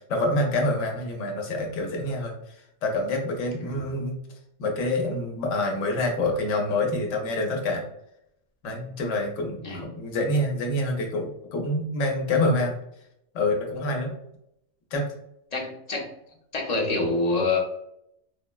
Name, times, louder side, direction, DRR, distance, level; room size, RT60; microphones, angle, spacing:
voice 1, 0.1-2.3 2.8-4.2 4.6-7.9 8.6-12.7 13.3-14.1 14.9-15.1, left 2 dB, 85° left, 1 dB, 1.0 m, -26 dB
voice 2, 15.5-16.1 16.5-17.6, left 3 dB, 40° left, -1 dB, 0.6 m, -26 dB
3.5 x 2.0 x 2.2 m, 0.76 s
omnidirectional pair, 1.3 m